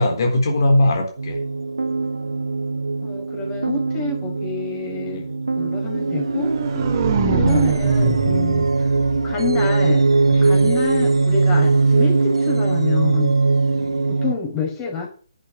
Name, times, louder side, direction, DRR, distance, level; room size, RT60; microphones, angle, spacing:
voice 1, 0.0-1.4 5.1-5.3 10.3-10.6 13.7-14.1, left 1 dB, 55° left, 3 dB, 3.9 m, -21 dB
sound 1, 1.2-14.3, right 3 dB, 85° right, 0.5 m, -20 dB
voice 2, 3.0-5.3 5.6-6.5 7.3-8.9 9.2-13.3 14.1-15.1, left 5 dB, 20° left, 0 dB, 5.4 m, -28 dB
sound 2, 6.1-10.2, right 4 dB, 35° right, 2.9 m, -23 dB
11.5 x 8.1 x 6.8 m, 0.40 s
figure-of-eight pair, 145°, 3 cm